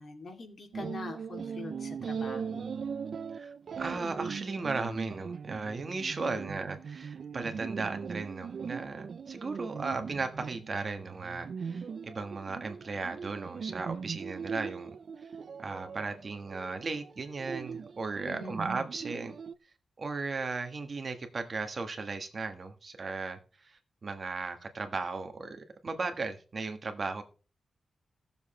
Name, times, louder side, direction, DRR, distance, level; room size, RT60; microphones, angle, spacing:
voice 1, 0.0-2.7 6.2-6.5 18.2-18.6, left 4 dB, 50° left, 3 dB, 2.7 m, -44 dB
sound 1, 0.7-19.6, right 6 dB, 60° right, 0.5 m, -40 dB
voice 2, 3.3-15.3 15.6-19.3 20.0-27.2, right 3 dB, 40° right, 6 dB, 1.5 m, -36 dB
16.5 x 7.3 x 4.3 m, 0.36 s
wide cardioid pair, 145°, 0 cm